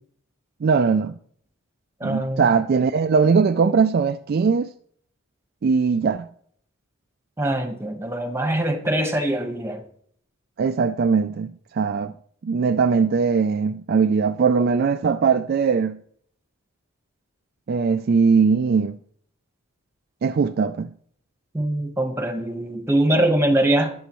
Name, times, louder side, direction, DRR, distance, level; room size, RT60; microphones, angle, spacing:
voice 1, 0.6-1.1 2.0-4.7 5.6-6.3 10.6-12.1 12.4-16.0 17.7-19.0 20.2-20.9, right 5 dB, 45° right, 0.3 m, -20 dB
voice 2, 2.0-2.4 7.4-9.8 21.5-23.9, right 1 dB, 10° right, 1.2 m, -23 dB
19.5 x 7.8 x 3.1 m
head